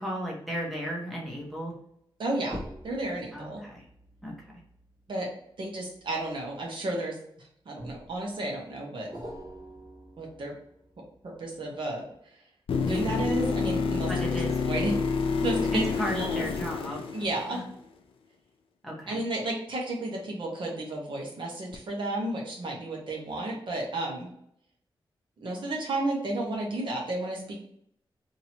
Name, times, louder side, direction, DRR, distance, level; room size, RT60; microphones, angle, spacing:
voice 1, 0.0-1.7 3.3-3.8 4.2-4.5 12.8-13.2 14.1-14.6 15.7-17.2 17.5-17.6 18.8-19.2, equal, ahead, -4 dB, 1.0 m, -35 dB
voice 2, 2.2-3.6 5.1-5.3 5.6-7.2 7.7-9.1 10.2-10.5 11.4-12.0 12.9-14.3 14.6-14.9 15.4-15.8 16.1-16.4 17.1-17.6 19.1-24.3 25.4-27.6, right 2 dB, 60° right, -2 dB, 1.1 m, -32 dB
sound 1, 2.5-7.1 7.8-8.4 9.1-12.1 13.3-15.4 16.1-17.5 18.0-18.1, equal, 40° right, 1.2 m, -47 dB
sound 2, 12.7-17.7 21.7-21.8, left 5 dB, 80° left, 0.5 m, -28 dB
2.9 x 2.8 x 4.2 m, 0.70 s
wide cardioid pair, 145°, 9 cm